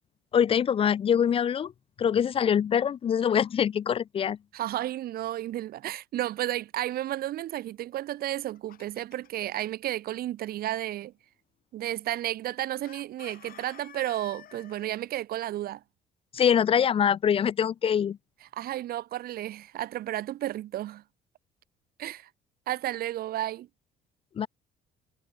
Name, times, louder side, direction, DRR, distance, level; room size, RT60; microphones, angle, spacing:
voice 1, 0.3-1.7 2.0-4.4 16.3-18.2 24.4-24.5, left 8 dB, 35° left, 0.4 m, -24 dB
voice 2, 4.5-11.1 11.7-15.8 18.5-21.0 22.0-22.3 22.7-23.7, right 13 dB, 65° right, 1.0 m, -32 dB
Chicken rooster, 8.2-9.4 12.8-15.0, left 11 dB, 60° left, 3.0 m, -50 dB
cardioid pair, 110°, 17 cm